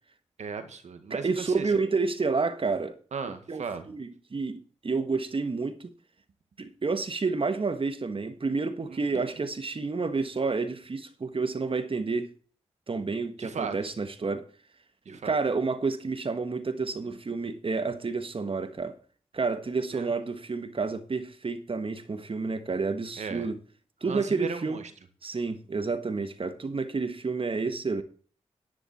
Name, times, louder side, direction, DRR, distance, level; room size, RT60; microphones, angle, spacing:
voice 1, 0.4-1.7 3.1-3.9 8.9-9.3 13.4-13.7 15.1-15.4 19.9-20.1 23.2-23.5 24.1-24.8, right 5 dB, 80° right, 1.9 m, -36 dB
voice 2, 1.1-3.0 3.5-5.9 6.6-12.3 12.9-14.5 15.1-18.9 19.3-23.6 24.0-24.8 25.2-28.0, right 4 dB, 50° right, 1.6 m, -30 dB
10.5 x 10.5 x 4.4 m
cardioid pair, 50°, 12 cm